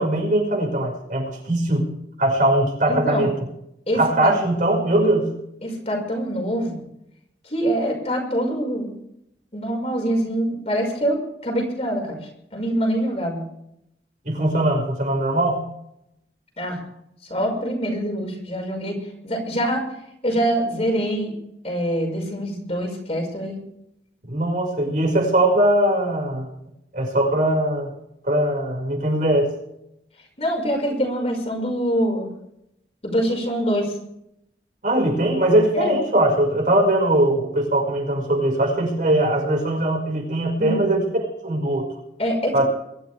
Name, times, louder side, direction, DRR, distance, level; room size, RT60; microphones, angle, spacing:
voice 1, 0.0-1.9 2.2-3.3 3.9-5.3 14.2-15.7 24.2-26.5 26.9-27.9 28.2-29.5 34.8-41.9 42.5-42.7, right 1 dB, 50° right, 0 dB, 5.5 m, -20 dB
voice 2, 2.9-3.3 3.9-4.3 5.6-6.8 7.4-8.9 9.5-12.2 12.5-13.5 16.6-16.8 17.3-19.0 19.2-19.9 20.2-21.3 21.6-23.6 30.4-32.3 33.0-33.9 35.7-35.9 40.6-40.9 42.2-42.5, equal, 35° left, 1 dB, 5.6 m, -24 dB
23.5 x 14.0 x 3.5 m, 0.76 s
head